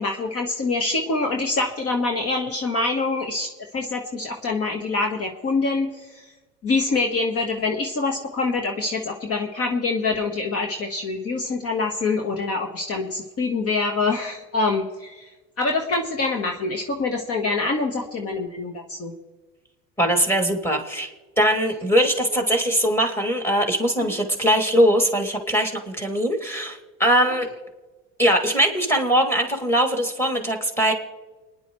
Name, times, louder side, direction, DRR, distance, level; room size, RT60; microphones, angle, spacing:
voice 1, 0.0-6.3 6.6-15.3 15.6-19.1, left 3 dB, 45° left, 3 dB, 1.5 m, -25 dB
voice 2, 20.0-21.1 21.4-27.5 28.2-30.9, equal, 5° left, 3 dB, 2.6 m, -21 dB
29.0 x 10.5 x 3.2 m, 1.2 s
supercardioid pair, 95°, 34 cm